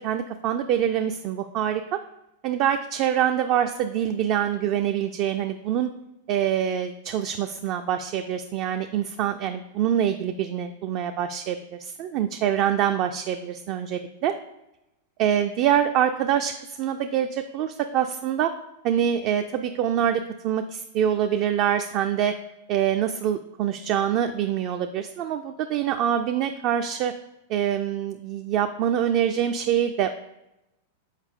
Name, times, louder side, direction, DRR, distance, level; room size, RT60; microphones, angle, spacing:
voice 1, 0.0-2.0 2.4-5.9 6.3-14.3 15.2-18.5 18.8-22.4 22.7-27.1 27.5-30.1, right 9 dB, 45° right, 6 dB, 0.3 m, -25 dB
6.4 x 4.5 x 3.6 m, 0.91 s
hypercardioid pair, 105°, 0 cm